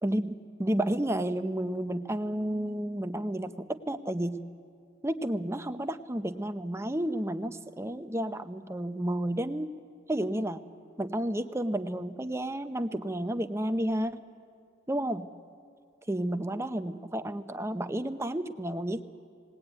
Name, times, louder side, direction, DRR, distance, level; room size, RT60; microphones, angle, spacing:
voice 1, 0.0-4.4 5.0-9.7 10.1-10.6 11.0-14.2 14.9-15.2 16.1-19.0, right 1 dB, 15° right, 9 dB, 0.6 m, -31 dB
19.5 x 19.0 x 9.0 m, 2.4 s
head